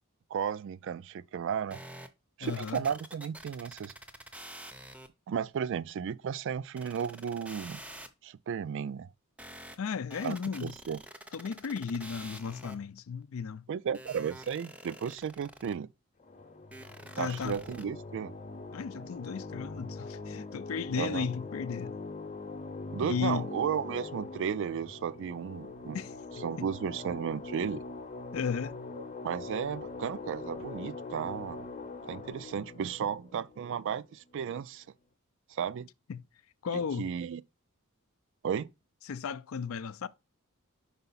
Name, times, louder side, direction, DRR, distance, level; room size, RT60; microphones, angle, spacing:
voice 1, 0.3-1.8 2.4-3.9 5.3-7.8 8.2-9.1 10.2-10.4 10.6-11.0 13.7-15.9 17.2-18.3 21.0-21.3 22.9-26.0 26.4-27.8 29.2-31.7 32.0-34.8 35.5-35.9 36.7-37.4 38.4-38.7, right 7 dB, 60° right, 0.3 m, -34 dB
sound 1, 1.7-2.1 2.4-5.1 5.5-5.6 5.9-6.0 6.8-8.1 9.4-9.8 10.1-13.0 13.9-15.7 16.7-17.8, right 1 dB, 5° right, 0.6 m, -47 dB
voice 2, 2.4-2.8 9.8-10.7 11.3-13.7 17.2-17.6 18.7-22.0 23.0-23.5 25.9-26.7 28.3-28.8 36.1-36.2 36.6-37.1 39.1-40.1, left 6 dB, 70° left, 0.4 m, -35 dB
sound 2, 16.2-34.3, left 3 dB, 35° left, 0.8 m, -43 dB
5.6 x 4.8 x 4.0 m
head